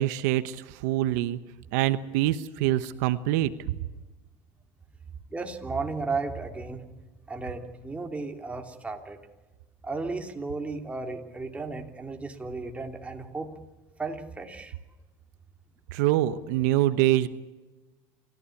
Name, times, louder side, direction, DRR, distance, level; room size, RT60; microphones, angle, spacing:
voice 1, 0.0-1.4 1.7-3.8 15.9-17.3, right 14 dB, 80° right, 13 dB, 1.0 m, -25 dB
voice 2, 5.3-6.8 7.3-9.2 9.8-13.5 14.0-14.7, right 3 dB, 15° right, 4 dB, 3.0 m, -34 dB
28.5 x 15.0 x 8.6 m, 1.2 s
supercardioid pair, 115°, 9 cm